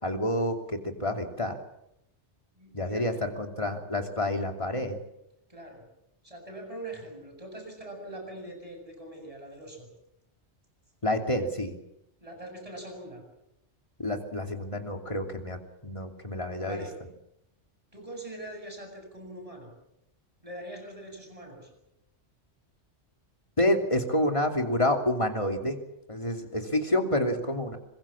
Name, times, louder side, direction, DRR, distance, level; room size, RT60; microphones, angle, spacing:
voice 1, 0.0-1.6 2.7-5.0 11.0-11.7 14.0-16.8 23.6-25.8 26.1-27.8, left 1 dB, 25° left, 3 dB, 3.0 m, -28 dB
voice 2, 2.6-3.2 5.5-5.8 6.2-9.9 12.2-13.2 16.6-16.9 17.9-19.7 20.4-21.7, right 1 dB, 30° right, 3 dB, 8.0 m, -42 dB
25.5 x 22.0 x 7.4 m, 0.82 s
omnidirectional pair, 1.2 m